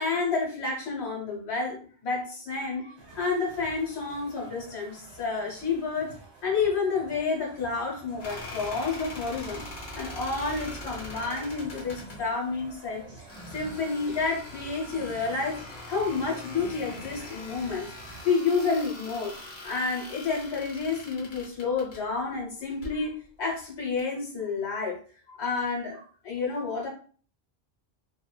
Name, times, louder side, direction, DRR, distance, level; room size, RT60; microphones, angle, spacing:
voice 1, 0.0-6.1 6.4-9.6 9.9-15.6 15.9-17.9 18.2-19.3 19.6-25.0 25.3-26.9, left 4 dB, 75° left, -2 dB, 1.1 m, -30 dB
sound 1, 3.0-18.3, right 2 dB, 75° right, 1.1 m, -49 dB
sound 2, 8.2-12.2 13.3-22.0 22.7-23.0 24.0-24.1, left 1 dB, 50° left, 0.8 m, -42 dB
2.8 x 2.1 x 2.2 m, 0.42 s
omnidirectional pair, 1.1 m